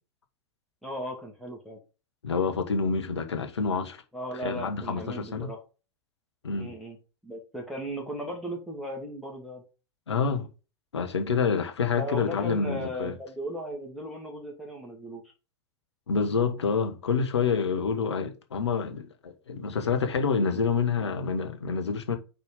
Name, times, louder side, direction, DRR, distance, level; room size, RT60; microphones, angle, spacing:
voice 1, 0.8-1.8 4.1-5.6 6.6-7.0 7.2-9.6 12.0-15.2, equal, ahead, 2.2 m, -36 dB
voice 2, 2.2-4.0 4.4-5.5 6.4-6.7 10.1-10.5 10.9-13.2 16.1-22.2, left 5 dB, 80° left, 1.3 m, -27 dB
5.2 x 4.4 x 5.3 m
figure-of-eight pair, 95°, 14 cm